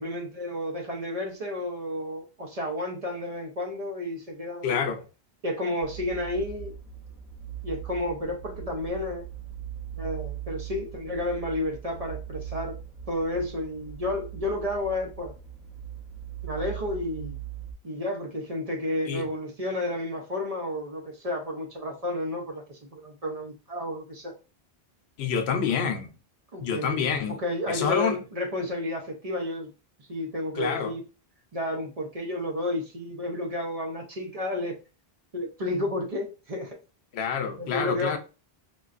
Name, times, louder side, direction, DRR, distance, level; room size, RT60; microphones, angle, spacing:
voice 1, 0.0-4.8 5.4-6.7 7.6-9.3 10.0-12.8 13.1-15.3 16.4-17.4 17.8-24.3 26.5-27.0 27.4-29.7 30.0-31.0 31.5-34.8 35.3-36.8 37.6-38.2, left 1 dB, 45° right, 0.6 m, -31 dB
voice 2, 4.6-5.0 19.1-19.3 25.2-26.1 26.6-27.4 27.7-28.2 30.6-30.9 37.1-38.2, left 6 dB, 80° left, 0.8 m, -27 dB
sound 1, 5.8-17.7, right 10 dB, ahead, 0.5 m, -40 dB
3.7 x 2.2 x 2.4 m
omnidirectional pair, 1.1 m